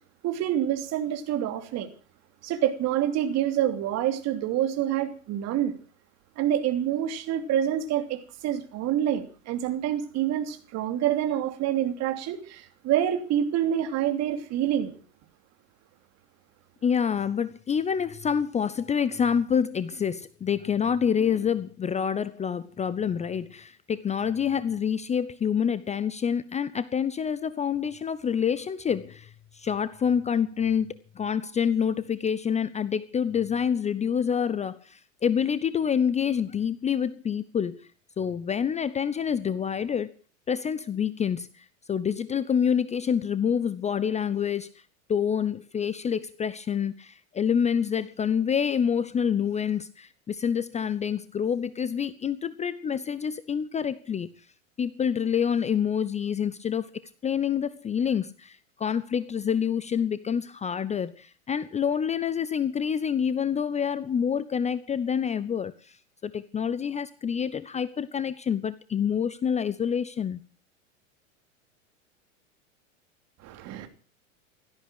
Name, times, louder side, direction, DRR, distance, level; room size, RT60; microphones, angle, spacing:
voice 1, 0.2-1.9 2.4-5.7 6.4-15.0 73.4-73.9, right 11 dB, 40° right, 3.0 m, -27 dB
voice 2, 16.8-37.9 38.2-40.1 40.5-44.7 45.1-54.3 54.8-56.9 57.2-66.0 66.2-70.4, left 7 dB, 15° left, 0.8 m, -27 dB
17.0 x 13.5 x 6.2 m
hypercardioid pair, 95°, 39 cm